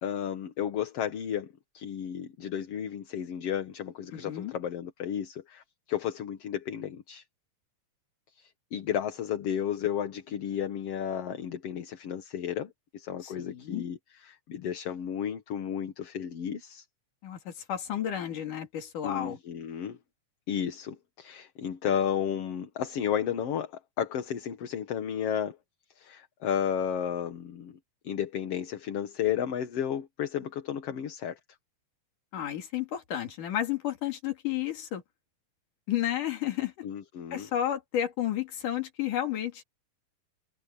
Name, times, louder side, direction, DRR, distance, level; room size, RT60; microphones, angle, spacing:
voice 1, 0.0-7.2 8.4-16.9 19.0-20.0 20.5-25.6 26.0-27.8 28.0-31.4 36.8-37.5, left 9 dB, 55° left, 2.2 m, -33 dB
voice 2, 4.1-4.5 13.2-13.8 17.2-19.4 32.3-35.0 35.9-36.7 37.3-39.6, left 11 dB, 85° left, 3.9 m, -32 dB
omnidirectional pair, 3.6 m